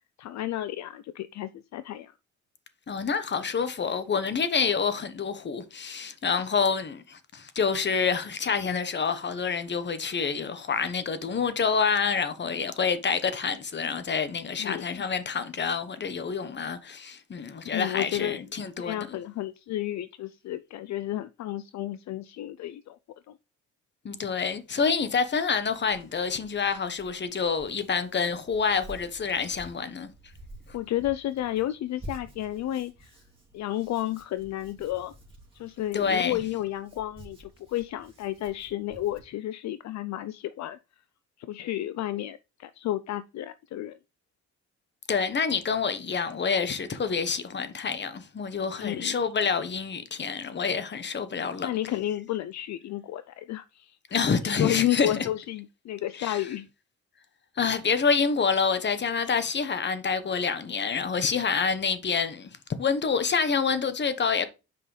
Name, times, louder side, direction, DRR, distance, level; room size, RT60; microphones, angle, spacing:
voice 1, 0.2-2.1 14.6-15.0 17.6-18.4 18.8-23.0 23.3-23.4 30.7-33.1 33.5-35.1 35.5-40.8 41.4-44.0 48.8-49.2 51.6-54.0 54.5-56.7, left 13 dB, 65° left, 0.5 m, -32 dB
voice 2, 2.9-19.2 24.0-30.1 35.9-36.4 45.1-51.7 54.1-55.3 56.2-56.4 57.6-62.5 62.8-64.5, left 5 dB, 35° left, 1.1 m, -27 dB
Hands, 25.2-39.2, equal, 20° right, 2.7 m, -50 dB
7.6 x 5.4 x 3.3 m
cardioid pair, 90°, 30 cm